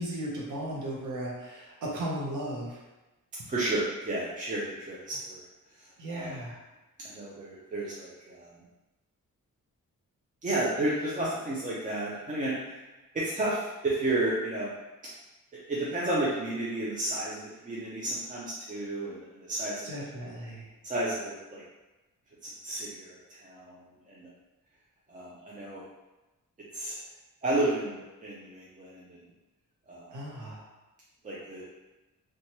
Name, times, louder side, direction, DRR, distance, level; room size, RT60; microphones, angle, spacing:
voice 1, 0.0-2.8 6.0-6.6 19.8-20.7 30.1-30.6, right 1 dB, 65° right, -4 dB, 0.7 m, -36 dB
voice 2, 3.5-5.4 5.8-6.3 7.0-8.6 10.4-12.8 13.1-14.7 15.5-20.1 20.8-21.6 22.4-23.8 24.1-24.3 25.1-25.8 26.7-27.0 27.4-29.2 29.9-30.1 31.2-31.7, right 1 dB, 25° right, -7 dB, 0.4 m, -32 dB
2.9 x 2.2 x 2.8 m, 1.1 s
wide cardioid pair, 165°, 33 cm